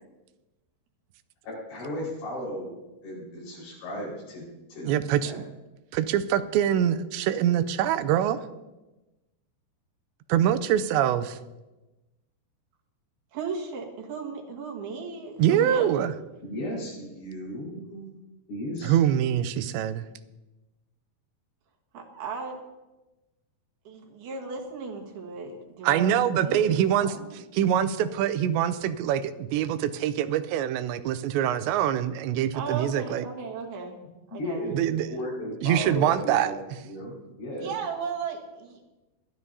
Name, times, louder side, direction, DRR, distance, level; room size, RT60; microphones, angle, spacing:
voice 1, 1.4-2.7 3.0-5.4 16.4-18.0 18.5-19.0 34.3-34.7 35.1-36.5 36.8-37.7, equal, 85° left, -5 dB, 7.2 m, -35 dB
voice 2, 4.9-5.4 5.9-8.4 10.3-11.3 15.4-16.1 18.8-20.0 25.8-27.1 27.5-33.2 34.7-35.1 35.6-36.5, right 10 dB, 85° right, 12 dB, 2.9 m, -24 dB
voice 3, 13.3-16.1 21.9-22.6 23.8-27.3 32.5-34.0 34.3-34.7 37.6-38.9, right 5 dB, 65° right, 0 dB, 3.3 m, -36 dB
21.0 x 12.5 x 2.8 m, 1.0 s
omnidirectional pair, 5.0 m